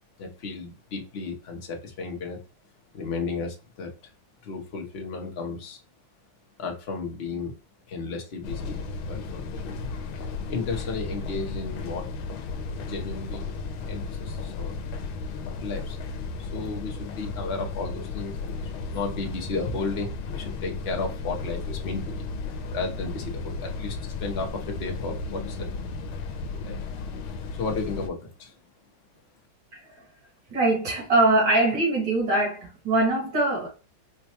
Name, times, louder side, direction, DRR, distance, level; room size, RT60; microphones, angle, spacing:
voice 1, 0.2-2.4 2.9-3.9 4.4-5.8 6.6-7.5 7.9-9.9 10.5-12.1 12.8-13.5 13.9-14.7 15.6-16.0 16.4-22.3 22.7-25.7 26.5-26.8 27.5-28.5, left 4 dB, 50° left, 0.7 m, -33 dB
sound 1, 8.4-28.1, left 3 dB, 85° left, 1.4 m, -34 dB
voice 2, 29.7-30.0 30.5-33.7, right 2 dB, 65° right, 2.5 m, -23 dB
5.1 x 2.2 x 2.8 m
omnidirectional pair, 2.2 m